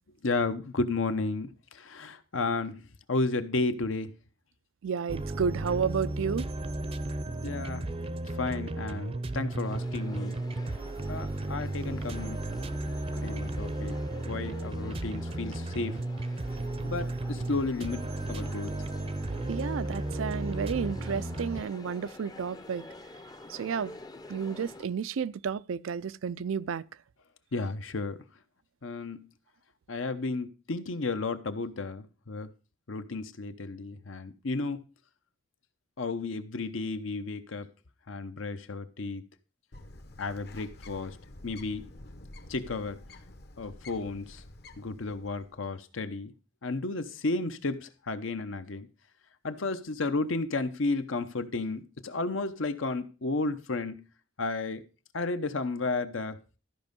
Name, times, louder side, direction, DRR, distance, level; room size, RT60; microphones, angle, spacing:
voice 1, 0.2-2.8 3.1-4.1 7.4-7.9 8.4-10.4 11.1-12.4 13.1-14.0 14.3-16.0 16.8-18.7 27.5-28.2 28.8-29.3 29.9-32.5 32.9-34.8 36.0-37.7 38.1-39.2 40.2-41.2 41.4-41.9 42.5-43.0 43.6-44.4 44.8-46.3 46.6-48.9 49.4-54.0 54.4-54.8 55.1-56.4, left 3 dB, 80° left, 0.9 m, -33 dB
voice 2, 4.8-6.5 19.5-22.8 23.5-23.9 24.3-26.8, right 6 dB, 85° right, 0.4 m, -31 dB
sound 1, 5.1-21.6, right 2 dB, 30° right, 0.6 m, -34 dB
sound 2, 9.6-24.9, left 2 dB, 20° left, 0.6 m, -48 dB
Bird, 39.7-45.6, left 1 dB, 55° left, 1.0 m, -49 dB
13.5 x 5.3 x 5.2 m
head